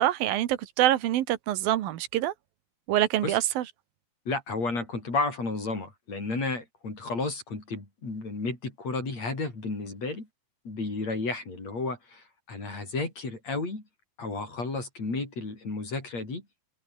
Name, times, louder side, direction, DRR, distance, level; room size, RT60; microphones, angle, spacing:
voice 1, 0.0-2.3 2.9-3.6, right 13 dB, 80° right, 3.0 m, -25 dB
voice 2, 4.3-10.3 10.6-13.8 14.2-16.5, left 3 dB, 45° left, 8.3 m, -32 dB
omnidirectional pair, 4.1 m